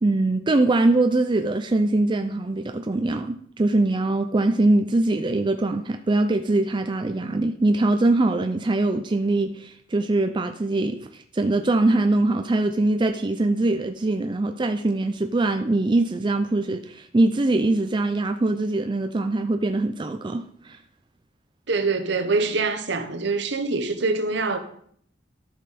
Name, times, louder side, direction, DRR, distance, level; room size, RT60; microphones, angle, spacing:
voice 1, 0.0-20.8, right 2 dB, 25° right, 0.4 m, -22 dB
voice 2, 21.7-24.6, right 3 dB, 65° right, 1.0 m, -24 dB
12.5 x 5.5 x 4.1 m
head